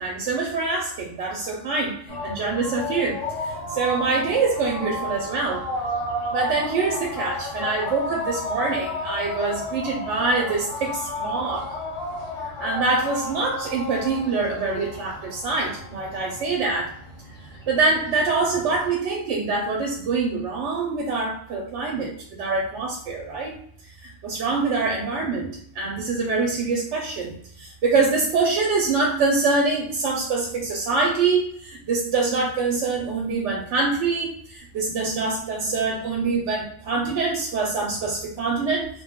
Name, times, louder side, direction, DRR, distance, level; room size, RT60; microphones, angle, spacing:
voice 1, 0.0-5.6 6.3-11.7 12.4-16.9 17.7-22.1 22.4-23.5 24.0-38.9, right 4 dB, 75° right, 0 dB, 0.9 m, -25 dB
sound 1, 2.1-18.9, left 1 dB, 80° left, 1.3 m, -33 dB
2.5 x 2.2 x 3.5 m, 0.64 s
omnidirectional pair, 1.3 m